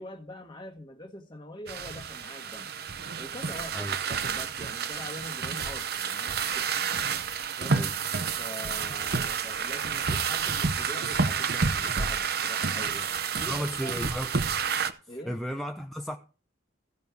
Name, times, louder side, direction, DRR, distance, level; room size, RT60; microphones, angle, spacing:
voice 1, 0.0-2.7 3.2-7.0 7.6-7.9 8.4-13.9 15.1-15.4, left 1 dB, 25° left, 1.4 m, -44 dB
sound 1, 1.7-14.9, right 6 dB, 55° right, 0.7 m, -30 dB
voice 2, 13.4-14.3 15.0-16.2, equal, ahead, 0.5 m, -34 dB
16.0 x 5.4 x 4.7 m
head